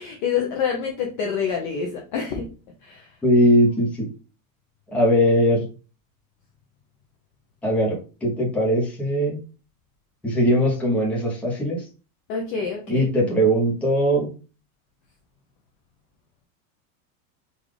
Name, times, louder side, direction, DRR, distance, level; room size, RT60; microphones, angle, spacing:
voice 1, 0.0-2.5 2.8-3.2 12.3-13.1, left 6 dB, 35° left, 0 dB, 0.4 m, -27 dB
voice 2, 3.2-4.1 4.9-5.6 7.6-9.4 10.2-11.9 12.9-14.3, equal, 5° left, -5 dB, 0.7 m, -20 dB
3.8 x 2.3 x 3.2 m, 0.35 s
supercardioid pair, 180°, 44 cm